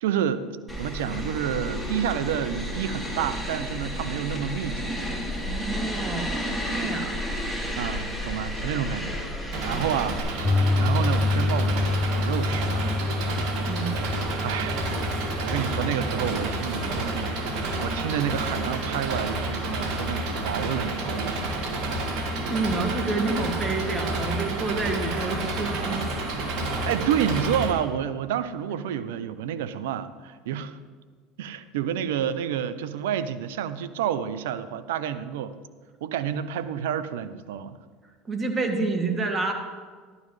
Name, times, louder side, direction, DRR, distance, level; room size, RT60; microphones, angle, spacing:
voice 1, 0.0-0.4 0.8-5.0 7.7-9.2 9.6-10.5 10.8-13.1 14.0-14.9 15.1-21.7 26.9-30.8 31.4-35.6 36.0-37.8, right 9 dB, 85° right, 13 dB, 0.5 m, -29 dB
sound 1, 0.7-10.2, equal, 5° right, 3.3 m, -32 dB
voice 2, 5.5-6.4 6.7-7.2 9.0-9.8 13.7-14.0 22.5-26.0 38.2-39.5, right 3 dB, 30° right, 4 dB, 1.7 m, -29 dB
Engine, 9.5-27.7, right 2 dB, 65° right, 1.8 m, -30 dB
Piano, 10.4-18.5, left 2 dB, 15° left, 0.3 m, -28 dB
12.0 x 12.0 x 3.2 m, 1.5 s
supercardioid pair, 90°, 0 cm